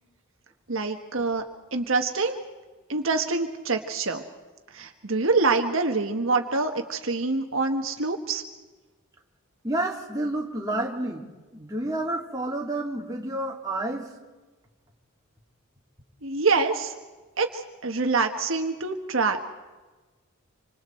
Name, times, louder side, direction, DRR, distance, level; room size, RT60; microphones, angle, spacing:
voice 1, 0.7-1.4 1.7-2.4 2.9-4.2 4.7-8.4 16.2-16.9 17.4-19.4, right 3 dB, 65° right, 5 dB, 1.4 m, -25 dB
voice 2, 9.6-11.2 11.5-14.1, right 1 dB, 15° right, -1 dB, 2.5 m, -29 dB
27.0 x 26.0 x 4.5 m, 1.2 s
head